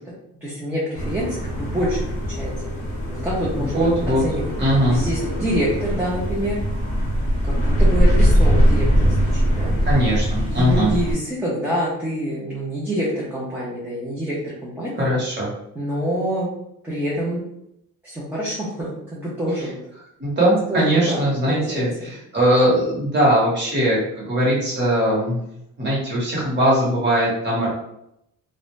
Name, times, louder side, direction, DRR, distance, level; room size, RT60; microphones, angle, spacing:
voice 1, 0.4-2.5 3.1-3.9 4.2-4.5 4.9-6.6 7.4-9.8 10.5-15.1 15.8-16.5 16.8-17.4 18.0-19.8 20.7-22.1, equal, 5° right, -7 dB, 0.4 m, -26 dB
sound 1, 0.9-11.1, equal, 20° left, 0.7 m, -21 dB
voice 2, 3.6-4.2 4.6-5.0 9.8-10.9 15.0-15.5 20.2-25.4 25.8-27.7, right 1 dB, 30° right, -5 dB, 1.0 m, -20 dB
2.4 x 2.1 x 3.0 m, 0.79 s
cardioid pair, 170°, 34 cm